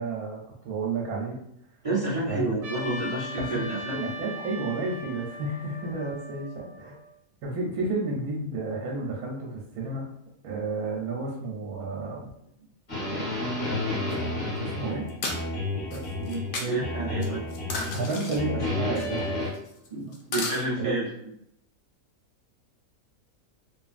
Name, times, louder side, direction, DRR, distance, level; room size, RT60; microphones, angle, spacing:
voice 1, 0.0-1.4 2.3-2.5 3.4-6.9 7.4-10.0 10.4-12.3 14.6-15.1 15.5-15.6 15.9-16.0 16.5-17.5 17.9-19.5 20.8-21.0, right 3 dB, 85° right, -2 dB, 1.1 m, -32 dB
voice 2, 1.8-4.1 16.2-17.4 19.9-21.1, right 2 dB, 45° right, -9 dB, 0.4 m, -30 dB
Trumpet, 2.6-7.1, equal, 65° right, 0.9 m, -39 dB
sound 1, 12.9-16.6 16.8-18.1 18.4-19.5, left 2 dB, 40° left, 1.4 m, -31 dB
sound 2, 14.1-14.2 15.1-15.4 15.9-16.7 17.2-18.4 18.9-19.2 19.5-19.9 20.1-20.7, left 3 dB, 80° left, 0.4 m, -33 dB
2.8 x 2.5 x 2.4 m, 0.76 s
omnidirectional pair, 1.5 m